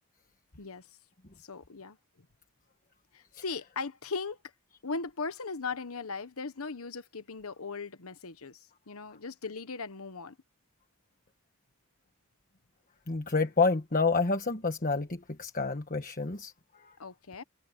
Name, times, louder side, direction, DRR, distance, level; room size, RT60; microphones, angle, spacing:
voice 1, 1.4-2.0 3.1-4.4 4.8-8.6 8.9-10.4 17.0-17.4, left 4 dB, 70° left, 1.2 m, -38 dB
voice 2, 13.1-17.0, left 4 dB, 35° left, 1.4 m, -29 dB
head